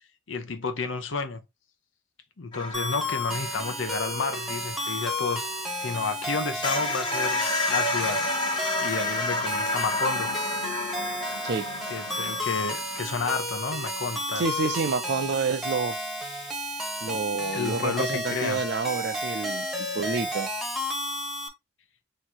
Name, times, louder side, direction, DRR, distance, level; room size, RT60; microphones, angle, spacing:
voice 1, 0.3-1.4 2.4-5.5 5.8-7.4 7.7-8.2 8.8-10.3 11.9-14.4 17.5-18.6, left 4 dB, 80° left, 0.8 m, -31 dB
sound 1, 2.5-5.9 6.2-6.3 6.6-13.4, left 2 dB, 25° left, 1.0 m, -31 dB
sound 2, 2.7-21.5, left 1 dB, ahead, 0.9 m, -32 dB
voice 2, 14.4-16.0 17.0-20.5, right 4 dB, 60° right, 0.5 m, -29 dB
3.0 x 2.7 x 4.3 m
head